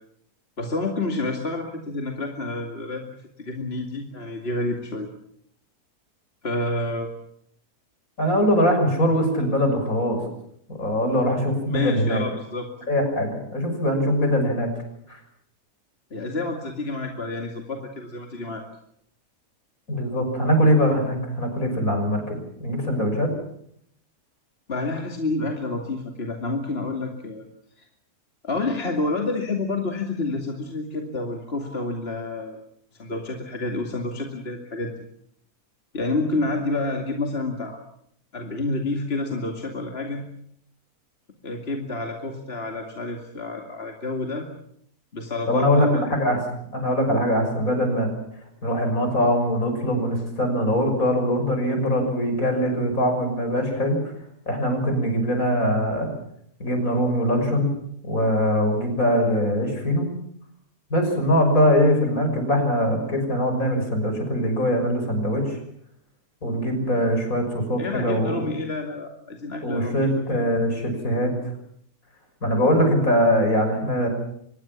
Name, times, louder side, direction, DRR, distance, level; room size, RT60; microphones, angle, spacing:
voice 1, 0.6-5.1 6.4-7.1 11.7-12.7 16.1-18.6 24.7-27.5 28.4-32.6 33.0-35.1 35.9-37.8 38.3-40.2 41.4-44.5 45.1-46.0 67.8-70.1, left 2 dB, 40° left, 2 dB, 2.6 m, -29 dB
voice 2, 8.2-10.2 10.7-12.2 12.9-14.7 15.1-15.2 19.9-23.3 45.5-46.4 46.7-48.1 48.6-54.1 54.5-56.1 56.6-57.7 58.0-60.1 60.9-65.6 66.4-68.5 69.6-71.3 72.4-74.1, equal, 65° left, 5 dB, 6.7 m, -22 dB
24.5 x 20.5 x 7.3 m, 0.70 s
omnidirectional pair, 1.6 m